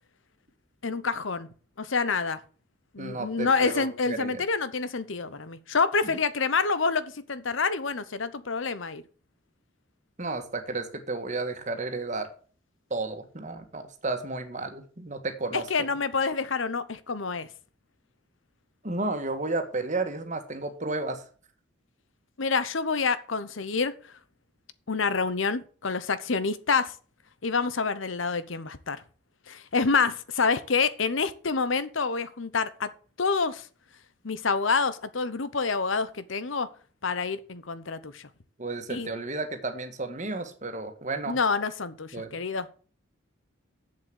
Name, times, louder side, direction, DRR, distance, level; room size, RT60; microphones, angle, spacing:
voice 1, 0.8-1.5 1.8-2.4 2.9-9.0 15.5-17.5 22.4-23.9 24.9-26.9 27.4-29.0 29.5-32.9 33.2-33.6 34.2-36.7 37.0-38.2 38.9-39.1 41.3-42.7, left 4 dB, 80° left, 1.0 m, -27 dB
voice 2, 3.0-4.4 6.0-6.2 10.2-12.3 12.9-15.9 18.8-21.2 38.6-41.4 42.1-42.3, right 3 dB, 40° right, 1.7 m, -32 dB
7.8 x 7.4 x 7.9 m
head